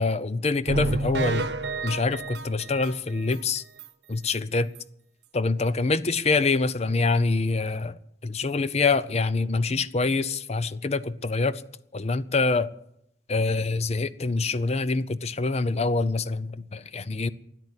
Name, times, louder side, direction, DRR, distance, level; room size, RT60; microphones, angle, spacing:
voice 1, 0.0-1.5 1.8-3.6 4.1-4.7 5.3-7.9 8.2-11.6 11.9-12.7 13.3-17.3, left 3 dB, 35° left, 0.6 m, -25 dB
sound 1, 0.7-3.4 3.8-3.9 4.3-4.4 4.8-4.9, right 2 dB, 70° right, 1.0 m, -30 dB
13.5 x 9.9 x 9.7 m
head